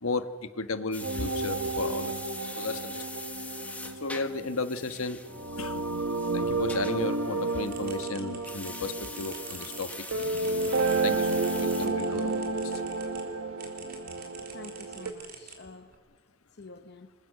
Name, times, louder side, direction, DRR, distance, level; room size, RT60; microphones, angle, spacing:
voice 1, 0.0-2.2 2.5-3.0 4.0-5.2 5.6-5.9 6.3-9.9 11.0-12.3 12.6-12.8, left 3 dB, 75° left, 1.3 m, -34 dB
sound 1, 0.9-8.1 8.4-11.9, left 2 dB, 5° left, 1.3 m, -43 dB
sound 2, 1.0-15.1, right 3 dB, 70° right, 1.5 m, -31 dB
sound 3, 7.6-13.2 13.6-16.0, right 6 dB, 45° right, 3.8 m, -48 dB
voice 2, 14.5-15.9 16.5-17.1, left 3 dB, 50° left, 0.8 m, -48 dB
28.0 x 22.0 x 6.6 m
head